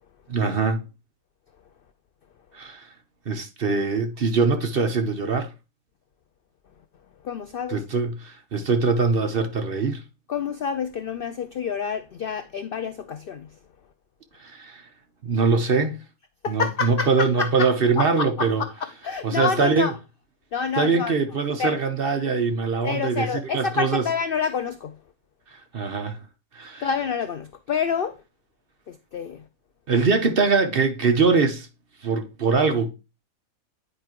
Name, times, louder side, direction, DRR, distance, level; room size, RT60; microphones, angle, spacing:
voice 1, 0.3-0.8 2.5-2.9 3.3-5.5 7.7-10.0 14.4-14.8 15.2-15.9 16.5-18.6 19.2-19.9 20.8-24.1 25.7-26.2 26.5-26.9 29.9-31.7 32.0-32.9, right 4 dB, 45° right, 1.0 m, -23 dB
voice 2, 7.2-7.8 10.3-13.5 16.4-17.7 18.0-19.9 20.5-21.1 21.6-21.8 22.8-24.9 26.8-28.2 28.9-29.4, left 6 dB, 70° left, 0.5 m, -28 dB
9.7 x 4.6 x 2.9 m
omnidirectional pair, 1.5 m